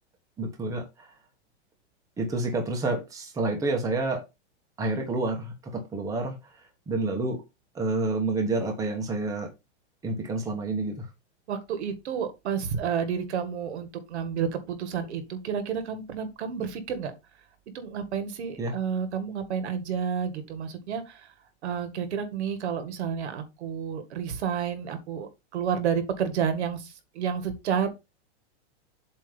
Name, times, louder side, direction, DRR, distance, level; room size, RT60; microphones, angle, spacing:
voice 1, 0.4-1.1 2.2-4.2 4.8-6.3 6.9-7.4 7.7-9.5 10.0-11.1 18.6-18.7, right 2 dB, 10° right, 1.2 m, -29 dB
voice 2, 11.5-17.1 17.7-21.3 21.6-27.9, right 7 dB, 75° right, 1.9 m, -30 dB
7.7 x 3.2 x 5.3 m
supercardioid pair, 165°, 35 cm